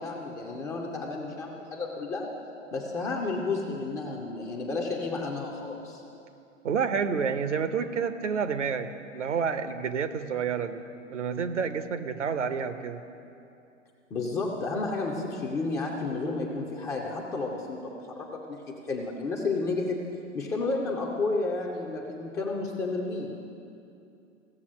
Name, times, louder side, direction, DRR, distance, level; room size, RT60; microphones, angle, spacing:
voice 1, 0.0-2.3 2.7-6.0 14.1-20.0 20.3-23.3, left 3 dB, 10° left, -1 dB, 0.4 m, -31 dB
voice 2, 6.6-8.9 9.1-10.8 11.1-13.0, right 6 dB, 70° right, 10 dB, 0.8 m, -29 dB
15.5 x 7.1 x 6.3 m, 2.6 s
figure-of-eight pair, 105°, 38 cm